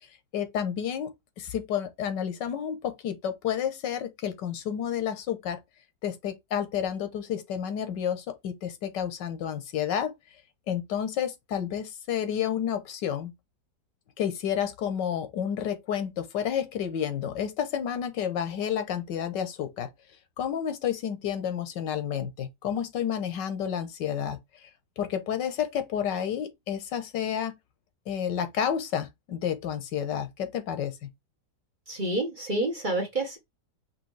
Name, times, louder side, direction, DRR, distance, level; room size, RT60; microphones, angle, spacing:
voice 1, 0.3-5.6 6.0-10.1 10.7-13.3 14.2-19.9 20.4-24.7 25.0-27.5 28.1-31.1, left 9 dB, 80° left, 1.6 m, -30 dB
voice 2, 31.9-33.4, right 2 dB, 30° right, 1.1 m, -28 dB
5.4 x 3.1 x 3.2 m
omnidirectional pair, 1.9 m